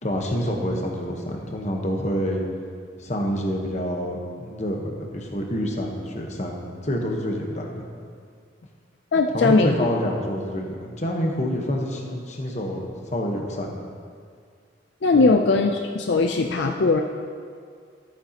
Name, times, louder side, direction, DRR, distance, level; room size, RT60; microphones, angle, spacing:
voice 1, 0.0-2.4 3.0-7.8 9.3-13.9 15.1-15.3, equal, 40° left, 1 dB, 1.1 m, -27 dB
voice 2, 9.1-9.7 15.0-17.0, left 3 dB, 70° left, 4 dB, 0.4 m, -19 dB
13.5 x 8.9 x 2.9 m, 2.1 s
head